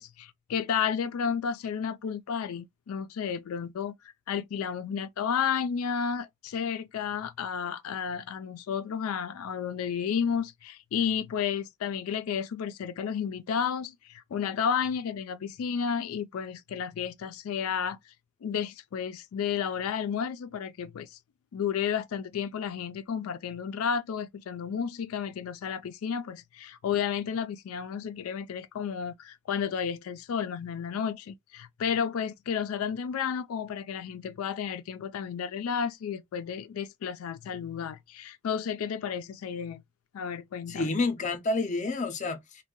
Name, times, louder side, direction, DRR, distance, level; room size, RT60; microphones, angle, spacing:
voice 1, 0.0-3.9 4.3-18.0 18.4-21.2 21.5-39.8 40.1-40.9, left 7 dB, 85° left, 0.4 m, -32 dB
voice 2, 40.7-42.6, left 3 dB, 35° left, 0.5 m, -29 dB
2.6 x 2.2 x 3.7 m
head